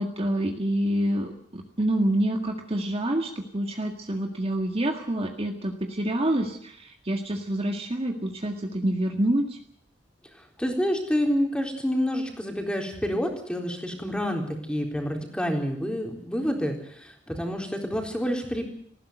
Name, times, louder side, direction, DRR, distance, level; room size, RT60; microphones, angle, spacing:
voice 1, 0.0-9.6, right 1 dB, 30° right, 3 dB, 1.9 m, -27 dB
voice 2, 10.6-18.7, equal, 5° left, 2 dB, 4.0 m, -28 dB
19.0 x 15.5 x 9.3 m, 0.66 s
head